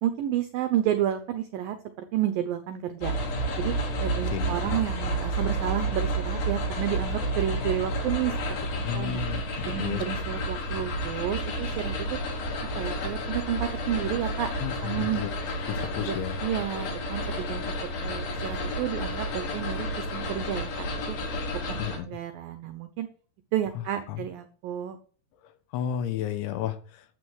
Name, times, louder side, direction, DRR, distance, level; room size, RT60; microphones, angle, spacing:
voice 1, 0.0-3.1 3.6-8.3 8.7-12.2 12.8-14.5 14.8-15.2 16.0-21.2 21.5-23.1 23.5-25.0, right 11 dB, 80° right, 10 dB, 2.0 m, -31 dB
sound 1, 3.0-22.0, equal, 65° left, 6.1 m, -31 dB
voice 2, 4.3-4.8 8.8-10.0 14.6-15.4 15.7-16.4 21.8-22.1 24.1-24.2 25.7-27.1, left 10 dB, 85° left, 10 dB, 3.7 m, -32 dB
12.0 x 8.2 x 6.3 m, 0.43 s
omnidirectional pair, 5.2 m